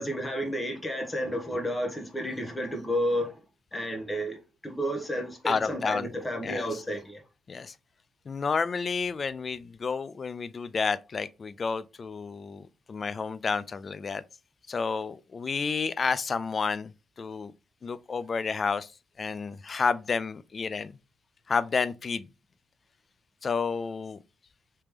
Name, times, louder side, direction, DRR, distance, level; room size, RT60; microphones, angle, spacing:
voice 1, 0.0-3.4 3.7-7.2, equal, 15° left, 0.9 m, -31 dB
voice 2, 5.5-6.1 6.4-6.8 7.5-7.7 8.3-14.2 14.7-16.9 17.2-17.5 17.8-18.9 19.2-20.9 21.5-22.3 23.4-24.2, left 5 dB, 40° left, 0.3 m, -30 dB
3.3 x 2.9 x 3.4 m
cardioid pair, 90°, 0 cm